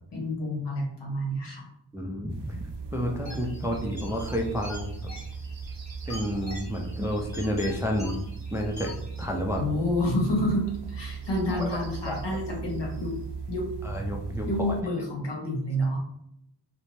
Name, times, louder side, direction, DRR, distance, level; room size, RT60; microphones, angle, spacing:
voice 1, 0.1-1.7 9.6-13.1 13.5-13.7 14.4-16.0, left 1 dB, 65° left, -1 dB, 1.0 m, -29 dB
voice 2, 1.9-2.6 2.9-5.0 6.1-8.2 8.5-8.9 9.2-9.6 11.5-11.7 12.1-12.2 13.8-14.8 15.8-15.9, equal, 5° right, 1 dB, 0.4 m, -30 dB
sound 1, 2.3-14.8, right 5 dB, 65° right, 0.5 m, -38 dB
sound 2, 3.3-9.3, left 1 dB, 35° left, 1.0 m, -45 dB
2.6 x 2.1 x 3.1 m, 0.77 s
wide cardioid pair, 60°, 45 cm